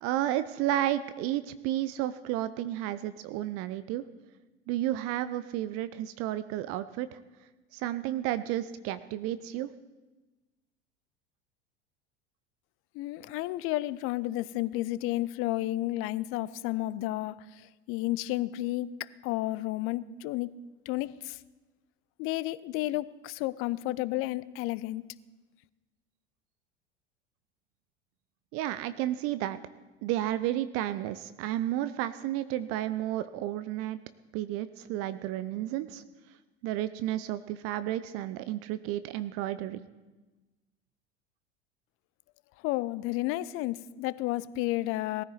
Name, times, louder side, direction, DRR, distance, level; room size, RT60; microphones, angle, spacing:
voice 1, 0.0-4.0 4.7-7.2 7.7-9.7 28.5-29.6 30.0-34.0 34.3-36.0 36.6-39.8, right 13 dB, 45° right, 14 dB, 0.6 m, -32 dB
voice 2, 12.9-20.5 20.9-21.4 22.2-25.0 42.6-45.2, left 17 dB, 40° left, 19 dB, 0.6 m, -32 dB
19.0 x 14.0 x 4.0 m, 1.2 s
figure-of-eight pair, 75°, 33 cm